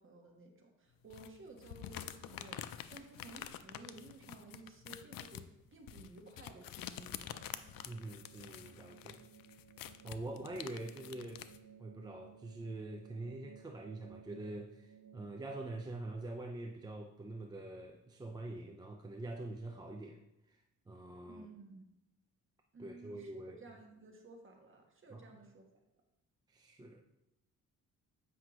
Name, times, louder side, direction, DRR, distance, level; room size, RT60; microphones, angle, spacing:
voice 1, 0.0-5.4 5.7-7.4 21.2-21.8 22.7-25.6, right 3 dB, 35° right, 2 dB, 1.2 m, -55 dB
sound 1, 1.1-11.6, left 11 dB, 80° left, 0.5 m, -48 dB
sound 2, 7.2-15.3, right 7 dB, 65° right, 0.8 m, -58 dB
voice 2, 7.9-9.2 10.0-11.4 11.8-20.2 20.5-20.6 20.9-21.5 22.8-23.6 25.1-25.2 26.5-27.0, right 2 dB, 10° right, 2 dB, 0.4 m, -45 dB
7.7 x 5.5 x 3.0 m, 0.90 s
cardioid pair, 120°, 34 cm